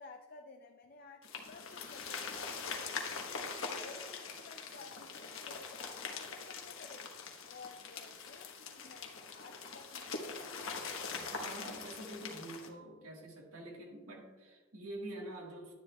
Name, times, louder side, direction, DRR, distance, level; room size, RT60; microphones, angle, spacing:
voice 1, 0.0-3.5 3.8-7.1 7.4-10.6, left 3 dB, 45° left, 4 dB, 0.5 m, -55 dB
sound 1, 1.2-12.7, left 5 dB, 70° left, 1.2 m, -43 dB
voice 2, 11.3-15.7, right 1 dB, 90° right, 0 dB, 1.5 m, -46 dB
11.0 x 10.0 x 2.3 m, 1.4 s
head